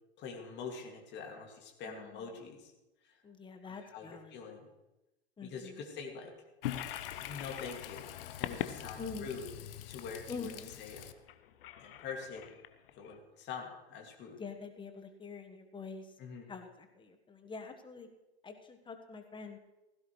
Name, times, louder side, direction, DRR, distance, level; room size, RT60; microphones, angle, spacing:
voice 1, 0.2-2.7 3.6-4.7 5.4-6.3 7.2-8.1 8.4-9.4 9.9-10.5 10.8-11.0 11.8-12.6 13.0-14.4 16.2-16.5, left 5 dB, 35° left, 1 dB, 2.4 m, -44 dB
voice 2, 1.9-2.3 3.2-4.4 5.4-5.8 9.0-9.3 10.3-10.7 14.4-16.1 16.5-18.1 18.4-19.6, left 4 dB, 15° left, 6 dB, 1.3 m, -45 dB
Toilet flush, 6.6-13.2, left 12 dB, 60° left, 0.9 m, -42 dB
16.5 x 15.5 x 3.2 m, 1.0 s
figure-of-eight pair, 95°, 33 cm